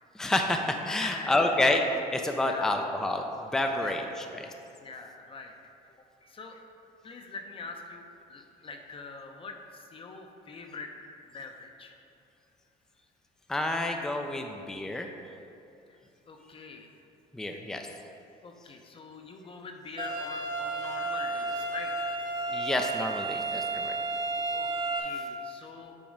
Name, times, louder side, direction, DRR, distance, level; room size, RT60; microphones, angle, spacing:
voice 1, 0.1-1.8 2.1-3.2 3.5-4.5 13.5-15.1 17.3-17.9 22.5-23.9, left 2 dB, 5° left, 4 dB, 0.4 m, -29 dB
voice 2, 0.9-1.4 2.5-2.8 3.8-4.1 4.8-5.5 6.2-6.7 7.0-11.0 11.3-12.0 15.9-16.0 16.3-16.9 18.4-22.1 24.5-24.7 25.0-25.9, left 3 dB, 30° left, 4 dB, 0.7 m, -43 dB
sound 1, 20.0-25.0, right 3 dB, 30° right, 1.0 m, -32 dB
8.6 x 3.0 x 5.0 m, 2.7 s
cardioid pair, 110°, 17 cm